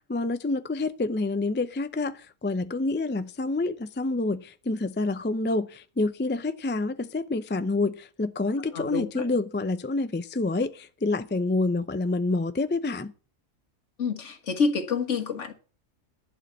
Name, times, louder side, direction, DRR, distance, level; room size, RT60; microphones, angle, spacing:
voice 1, 0.1-13.1, left 2 dB, 20° left, 0.3 m, -28 dB
voice 2, 8.7-9.3 14.0-15.5, left 5 dB, 65° left, 1.9 m, -28 dB
11.5 x 5.3 x 8.1 m
omnidirectional pair, 1.4 m